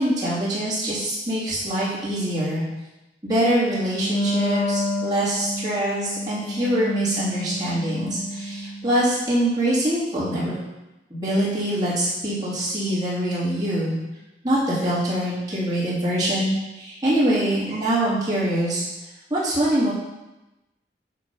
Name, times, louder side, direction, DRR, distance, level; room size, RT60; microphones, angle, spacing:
voice 1, 0.0-2.6 3.2-10.5 11.1-14.0 14.4-18.8 19.3-19.9, right 1 dB, 20° right, -10 dB, 2.5 m, -24 dB
Wind instrument woodwind instrument, 4.0-9.1, left 1 dB, 75° left, 0.7 m, -29 dB
9.1 x 3.1 x 5.4 m, 1.0 s
head